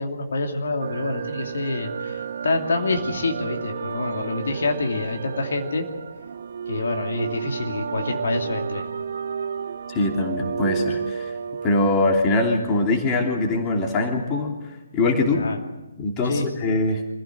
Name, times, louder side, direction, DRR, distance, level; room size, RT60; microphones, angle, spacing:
voice 1, 0.0-5.9 6.7-8.9 15.3-15.6 16.2-16.4, left 3 dB, 55° left, 3 dB, 2.7 m, -27 dB
sound 1, 0.8-11.8, right 6 dB, 50° right, 0.7 m, -31 dB
voice 2, 9.9-11.3 11.6-14.6 14.9-15.4 16.0-17.0, left 2 dB, 20° left, 2 dB, 3.1 m, -22 dB
26.0 x 16.5 x 7.8 m, 1.1 s
figure-of-eight pair, 135°, 0 cm